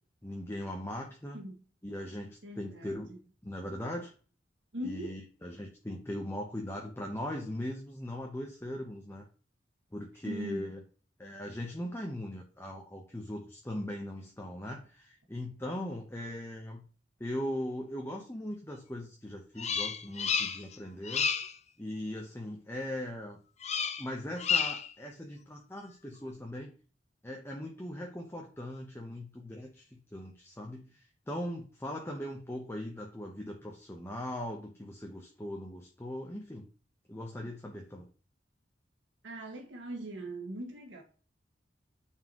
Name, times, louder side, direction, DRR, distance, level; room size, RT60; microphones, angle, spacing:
voice 1, 0.2-1.4 1.8-3.1 3.4-4.1 4.8-9.2 9.9-10.8 11.2-16.8 17.2-21.3 21.8-23.4 24.0-26.7 27.2-36.7 37.1-38.1, left 1 dB, 15° left, 1.0 m, -39 dB
voice 2, 2.4-3.0 4.7-5.2 10.3-10.7 39.2-41.0, right 1 dB, 80° right, 2.0 m, -40 dB
Bird vocalization bird call bird song, 19.6-20.8 21.0-21.6 23.6-24.1 24.4-24.9, left 6 dB, 35° left, 0.7 m, -31 dB
9.4 x 4.8 x 3.1 m
head